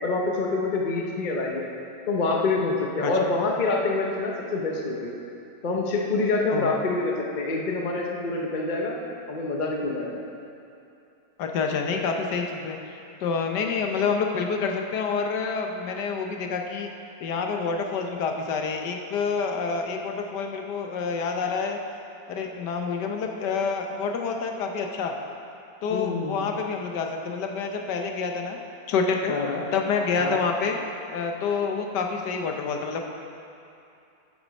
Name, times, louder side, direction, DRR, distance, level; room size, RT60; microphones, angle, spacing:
voice 1, 0.0-1.7 2.1-5.1 5.6-9.0 9.3-10.2 25.9-26.4 29.3-29.6 30.2-30.4, left 3 dB, 45° left, -1 dB, 0.6 m, -26 dB
voice 2, 11.4-16.9 17.2-21.8 22.3-25.2 25.8-28.6 28.9-29.3 29.7-30.8 31.1-33.0, left 5 dB, 80° left, 3 dB, 1.4 m, -27 dB
8.6 x 8.5 x 5.2 m, 2.7 s
omnidirectional pair, 1.8 m